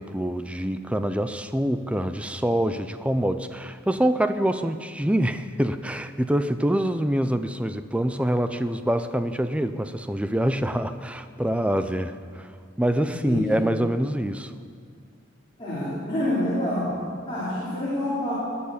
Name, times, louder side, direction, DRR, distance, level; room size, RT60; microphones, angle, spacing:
voice 1, 0.0-12.5 12.8-14.5, right 1 dB, 5° right, 10 dB, 0.5 m, -25 dB
voice 2, 13.2-13.5 15.6-16.9 17.3-18.3, left 1 dB, 25° left, -11 dB, 4.6 m, -27 dB
20.5 x 7.1 x 8.4 m, 2.2 s
head